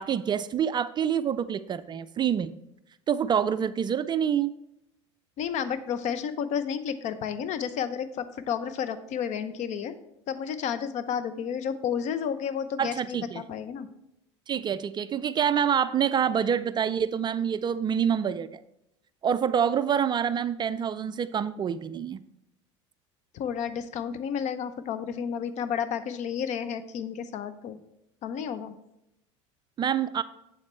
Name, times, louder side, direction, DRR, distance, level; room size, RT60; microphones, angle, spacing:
voice 1, 0.0-2.5 3.1-4.5 12.8-13.4 14.5-18.6 19.2-22.2 29.8-30.2, right 8 dB, 30° right, 14 dB, 0.3 m, -26 dB
voice 2, 5.4-9.9 10.3-13.9 23.3-27.8 28.2-28.7, left 8 dB, 50° left, 12 dB, 0.7 m, -31 dB
7.9 x 7.2 x 3.2 m, 0.85 s
hypercardioid pair, 75°, 16 cm